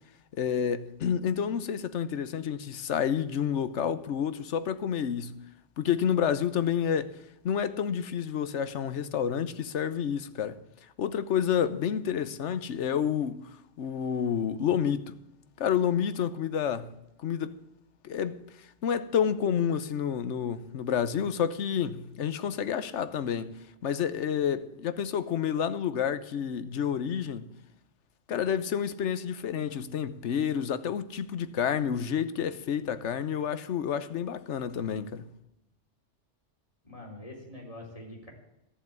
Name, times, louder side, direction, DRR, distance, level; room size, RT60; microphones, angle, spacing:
voice 1, 0.4-5.4 5.8-7.1 7.4-10.6 11.0-13.4 13.8-15.1 15.6-16.9 17.2-17.5 18.0-18.4 18.8-23.5 23.8-27.5 28.3-35.2, left 8 dB, 75° left, 1.1 m, -29 dB
voice 2, 36.8-38.3, left 1 dB, 30° left, 4.0 m, -44 dB
14.5 x 7.1 x 8.8 m
omnidirectional pair, 1.2 m